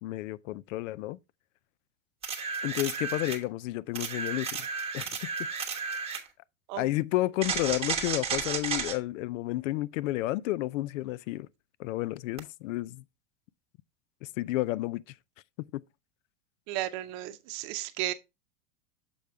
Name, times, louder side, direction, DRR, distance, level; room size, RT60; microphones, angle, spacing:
voice 1, 0.0-1.2 2.6-4.7 4.9-5.3 5.9-6.0 6.8-11.5 11.8-13.0 14.2-15.0 15.7-15.8, left 17 dB, 70° left, 0.5 m, -31 dB
sound 1, 2.2-3.4 4.0-6.3 7.4-9.0 12.4-12.5, right 5 dB, 15° right, 1.2 m, -33 dB
voice 2, 16.7-18.1, right 14 dB, 40° right, 0.8 m, -34 dB
7.0 x 5.1 x 3.4 m
supercardioid pair, 145°, 40 cm